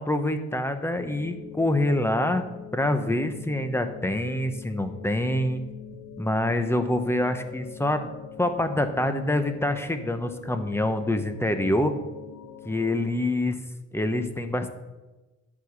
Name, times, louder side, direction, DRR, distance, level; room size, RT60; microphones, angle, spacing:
voice 1, 0.0-2.4 2.7-5.6 6.2-8.1 8.4-11.9 12.6-13.6 13.9-14.7, left 1 dB, 10° left, 7 dB, 1.0 m, -26 dB
sound 1, 1.0-13.1, left 8 dB, 55° left, 1.4 m, -44 dB
11.0 x 5.0 x 7.2 m, 1.1 s
cardioid pair, 90°, 30 cm